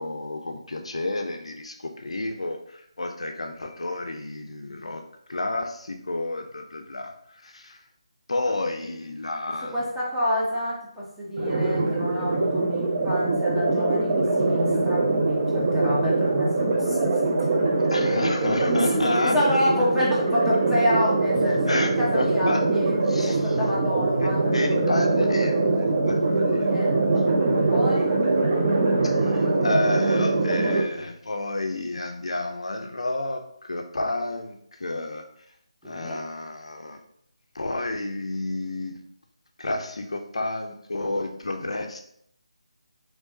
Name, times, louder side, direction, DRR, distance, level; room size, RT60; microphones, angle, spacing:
voice 1, 0.0-5.0 5.3-7.1 7.4-7.8 8.3-9.8 17.9-19.6 21.7-22.6 23.0-23.6 24.1-26.9 27.5-27.8 28.2-28.3 29.0-35.2 35.8-37.0 37.5-39.0 39.6-42.0, left 2 dB, 70° left, 4 dB, 0.4 m, -30 dB
voice 2, 9.7-17.2 18.7-24.8 26.6-27.0 27.7-28.2 35.8-36.2, equal, ahead, -11 dB, 0.8 m, -28 dB
sound 1, 11.4-30.8, right 2 dB, 30° right, 0.6 m, -23 dB
3.4 x 3.2 x 2.6 m, 0.70 s
figure-of-eight pair, 155°, 3 cm